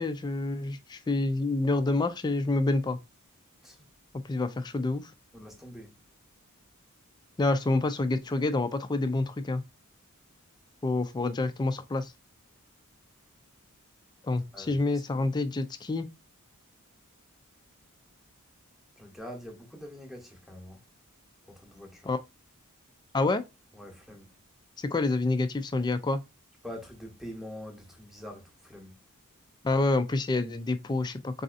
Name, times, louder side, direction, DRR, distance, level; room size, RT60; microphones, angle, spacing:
voice 1, 0.0-3.0 4.3-5.1 7.4-9.6 10.8-12.1 14.2-16.1 22.1-22.2 23.1-23.4 24.9-26.2 29.6-31.4, left 2 dB, 20° left, 0.3 m, -28 dB
voice 2, 5.3-5.9 14.5-15.3 19.0-20.8 21.5-22.1 23.7-24.3 26.6-29.0, equal, ahead, 0.8 m, -45 dB
4.1 x 2.6 x 2.4 m
head